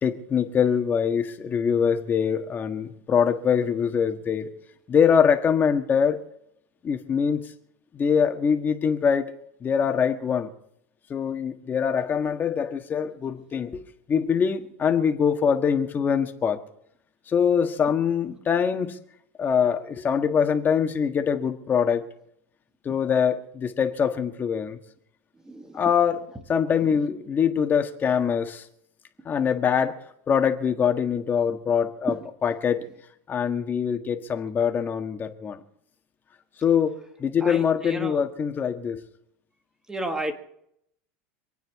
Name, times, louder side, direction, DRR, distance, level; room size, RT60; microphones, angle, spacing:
voice 1, 0.0-4.5 4.9-6.2 6.8-7.4 7.9-9.3 9.6-10.5 11.1-13.8 14.1-16.6 17.3-19.0 19.4-22.1 22.8-24.8 25.7-26.2 26.5-28.6 29.2-30.0 30.3-32.1 32.4-32.9 33.3-35.6 36.6-39.0, left 7 dB, 25° left, 5 dB, 1.6 m, -23 dB
voice 2, 25.3-25.9 32.1-32.2 37.4-38.3 39.9-40.3, right 1 dB, 10° right, 6 dB, 1.8 m, -33 dB
26.0 x 9.3 x 4.8 m, 0.75 s
supercardioid pair, 135°, 8 cm